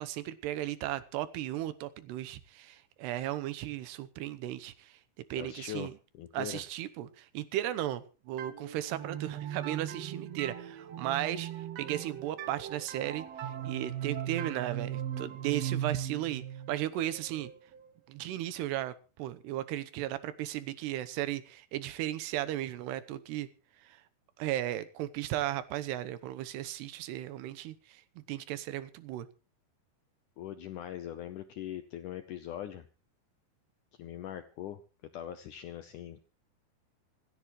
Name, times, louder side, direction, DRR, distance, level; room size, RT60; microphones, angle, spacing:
voice 1, 0.0-5.0 5.3-5.9 6.3-11.5 11.8-13.3 13.6-17.5 18.1-23.5 23.8-24.0 24.4-29.3, right 13 dB, 85° right, 13 dB, 3.1 m, -35 dB
voice 2, 5.4-6.6 30.4-32.9 34.0-34.8 35.1-36.2, left 11 dB, 75° left, 10 dB, 1.8 m, -41 dB
sound 1, 8.4-17.9, right 10 dB, 65° right, 1.7 m, -39 dB
26.5 x 10.5 x 3.1 m, 0.35 s
omnidirectional pair, 4.7 m